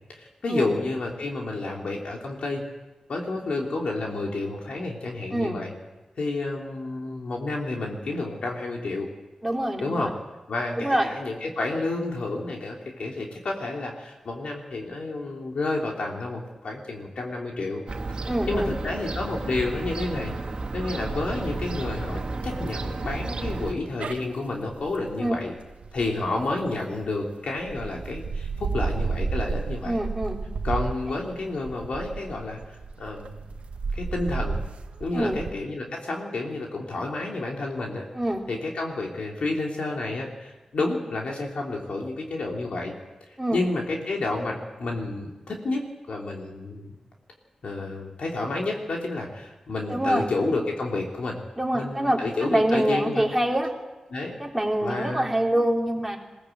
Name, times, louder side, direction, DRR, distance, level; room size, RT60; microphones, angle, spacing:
voice 1, 0.1-2.6 3.1-5.7 6.2-9.1 9.8-10.1 10.5-17.8 18.2-20.3 20.7-25.5 25.9-30.0 30.6-32.6 33.0-33.4 33.9-34.6 35.0-38.1 38.5-43.0 43.5-46.9 47.6-51.4 51.7-53.2 54.1-54.4 54.8-55.3, left 2 dB, 65° left, -1 dB, 3.2 m, -30 dB
voice 2, 9.4-10.1 10.8-11.1 18.2-18.7 25.2-25.3 29.8-30.4 35.1-35.4 38.1-38.4 43.4-43.6 49.9-50.5 51.6-53.7 54.4-56.2, right 1 dB, 5° right, -1 dB, 3.4 m, -25 dB
Fowl / Gull seagull, 17.9-23.7, right 3 dB, 45° right, 1.9 m, -32 dB
sound 1, 21.1-27.1 27.6-35.5, right 4 dB, 80° right, 1.2 m, -33 dB
21.5 x 18.0 x 8.0 m, 1.1 s
wide cardioid pair, 130°, 2 cm